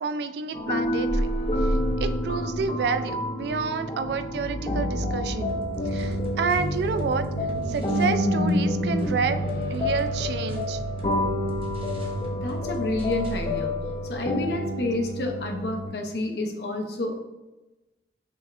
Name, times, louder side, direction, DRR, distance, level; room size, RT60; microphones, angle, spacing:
voice 1, 0.0-1.3 1.6-5.6 5.9-7.2 7.7-9.4 9.7-10.8, right 5 dB, 70° right, 10 dB, 0.3 m, -29 dB
sound 1, 0.5-15.9, left 1 dB, 30° left, 0.6 m, -30 dB
sound 2, 0.8-14.3, equal, 50° right, 1.2 m, -31 dB
sound 3, 5.5-8.2 8.5-13.5, equal, 30° right, 0.7 m, -44 dB
voice 2, 12.4-13.8 14.0-17.2, left 2 dB, 65° left, 3 dB, 0.7 m, -29 dB
6.0 x 3.4 x 2.5 m, 1.1 s
head